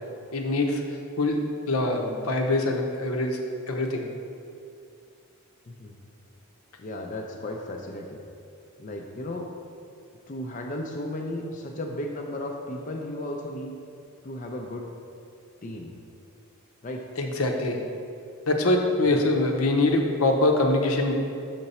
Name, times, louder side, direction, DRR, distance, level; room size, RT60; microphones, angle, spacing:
voice 1, 0.3-0.8 1.2-3.4 3.7-4.0 17.2-17.8 18.5-21.1, left 2 dB, 80° left, 2 dB, 0.8 m, -24 dB
voice 2, 5.7-6.0 6.8-8.2 8.8-9.5 10.3-13.8 14.2-14.9 15.6-15.9 16.8-17.1 19.1-19.2, left 1 dB, 35° left, 1 dB, 0.5 m, -35 dB
6.7 x 5.9 x 4.2 m, 2.5 s
head